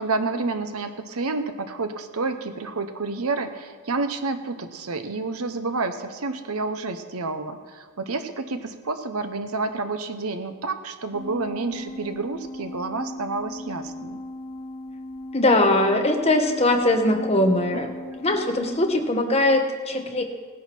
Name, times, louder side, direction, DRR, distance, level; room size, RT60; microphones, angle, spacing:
voice 1, 0.0-14.2 17.7-18.1, right 3 dB, 75° right, 8 dB, 1.0 m, -29 dB
sound 1, 11.1-19.0, left 1 dB, 80° left, 3.1 m, -38 dB
voice 2, 15.3-20.2, left 1 dB, 30° left, 4 dB, 1.1 m, -21 dB
18.0 x 10.5 x 4.5 m, 1.5 s
head